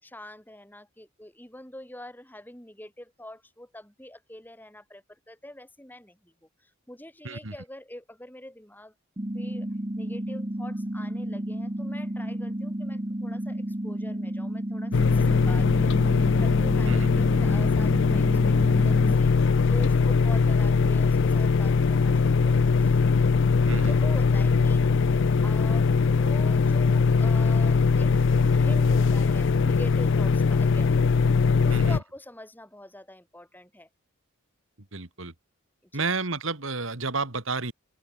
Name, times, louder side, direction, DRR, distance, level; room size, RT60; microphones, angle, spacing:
voice 1, 0.0-8.9 9.3-9.7 10.0-19.3 19.6-23.0 23.9-24.9 25.4-28.1 28.5-30.9 31.6-33.9 35.8-36.1, left 1 dB, 10° left, 4.7 m, -45 dB
sound 1, 9.2-19.2, right 1 dB, 25° right, 1.3 m, -32 dB
sound 2, 14.9-32.0, left 4 dB, 55° left, 0.5 m, -21 dB
voice 2, 34.9-35.3 35.9-37.7, right 3 dB, 60° right, 2.4 m, -30 dB
open air
head